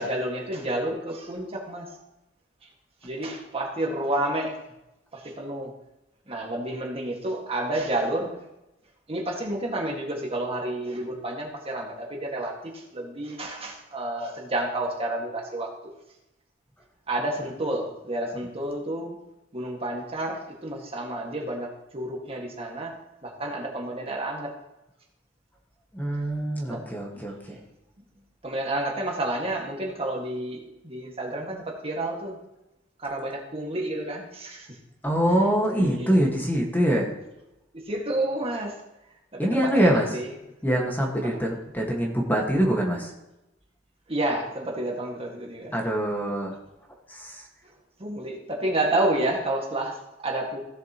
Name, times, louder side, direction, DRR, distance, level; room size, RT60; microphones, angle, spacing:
voice 1, 0.0-1.9 3.0-4.6 5.1-5.7 6.3-8.4 9.1-15.9 17.1-19.2 19.5-22.9 23.2-24.5 26.7-26.9 27.5-27.6 28.4-32.4 33.0-34.7 35.8-36.1 37.7-38.8 39.3-40.2 44.1-45.7 48.0-50.6, right 1 dB, 30° right, 0 dB, 1.7 m, -30 dB
voice 2, 25.9-27.6 35.0-37.1 39.4-40.2 40.6-43.1 45.7-46.6 46.9-47.5, equal, 10° left, 0 dB, 1.5 m, -24 dB
16.0 x 7.4 x 3.0 m, 0.93 s
head